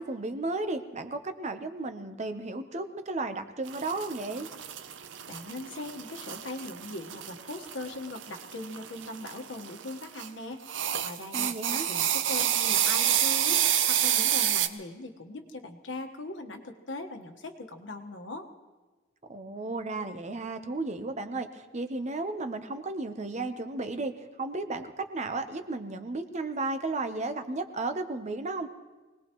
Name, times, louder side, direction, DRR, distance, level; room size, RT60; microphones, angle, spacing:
voice 1, 0.0-4.5 11.3-11.9 19.3-28.7, right 2 dB, 40° right, 9 dB, 0.8 m, -34 dB
sound 1, 3.7-10.3 10.7-14.7, right 10 dB, 85° right, 0.7 m, -29 dB
voice 2, 5.3-10.6 11.0-11.5 11.9-18.5, left 2 dB, 80° left, 4 dB, 1.4 m, -40 dB
25.0 x 19.0 x 3.1 m, 1.3 s
head